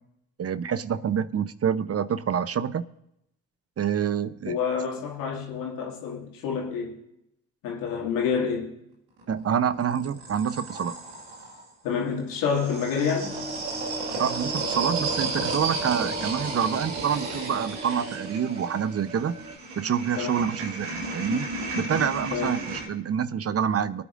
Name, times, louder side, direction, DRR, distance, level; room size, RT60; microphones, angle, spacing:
voice 1, 0.4-2.8 3.8-4.6 9.3-10.9 14.2-19.3 19.8-21.5 21.8-24.0, right 8 dB, 45° right, 0.8 m, -27 dB
voice 2, 4.4-7.0 7.6-8.7 11.8-13.3 20.2-20.5 22.3-22.6, left 6 dB, 80° left, 2.2 m, -28 dB
sound 1, 9.2-11.6 12.4-22.9, right 3 dB, 90° right, 2.0 m, -33 dB
sound 2, 13.2-19.6, right 2 dB, 15° right, 2.4 m, -39 dB
24.5 x 9.6 x 2.6 m
hypercardioid pair, 40°, 33 cm